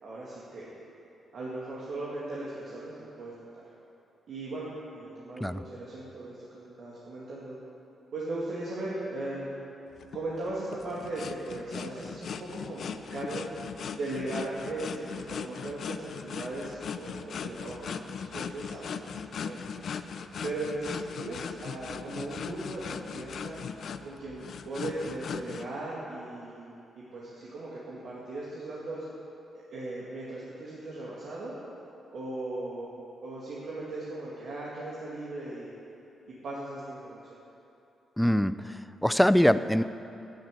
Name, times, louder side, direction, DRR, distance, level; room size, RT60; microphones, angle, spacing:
voice 1, 0.0-0.7 1.3-3.6 4.3-7.6 8.1-9.5 10.1-13.5 14.0-19.6 20.4-23.6 24.0-26.7 27.0-29.0 29.7-31.5 32.1-32.9 33.2-35.7 36.4-37.4, right 2 dB, 70° right, -7 dB, 2.3 m, -38 dB
sound 1, 10.0-25.7, left 6 dB, 65° left, 0.5 m, -39 dB
voice 2, 38.2-39.8, equal, 5° left, 13 dB, 0.4 m, -23 dB
10.0 x 9.4 x 8.3 m, 2.8 s
cardioid pair, 85°, 0 cm